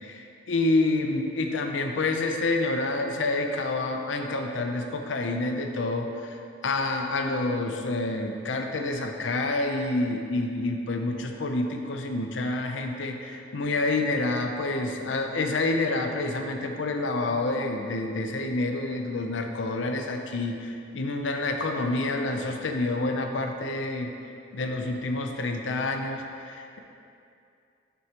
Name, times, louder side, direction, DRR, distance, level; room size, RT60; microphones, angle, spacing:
voice 1, 0.0-24.1 24.5-26.8, left 2 dB, 75° left, 4 dB, 0.6 m, -28 dB
11.0 x 4.6 x 2.9 m, 2.5 s
head